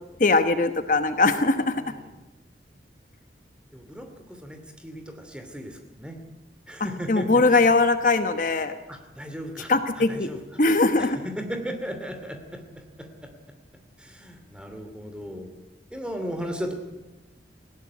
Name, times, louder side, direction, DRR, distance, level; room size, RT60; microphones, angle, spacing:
voice 1, 0.2-1.8 6.8-8.7 9.7-10.3 10.6-11.2, left 3 dB, 45° left, 9 dB, 1.1 m, -21 dB
voice 2, 3.7-4.1 4.4-4.6 4.8-6.2 6.7-7.3 8.9-9.7 10.1-10.4 11.4-12.6 14.0-15.5 15.9-16.7, equal, 5° right, 6 dB, 2.6 m, -35 dB
19.5 x 16.5 x 9.5 m, 1.1 s
head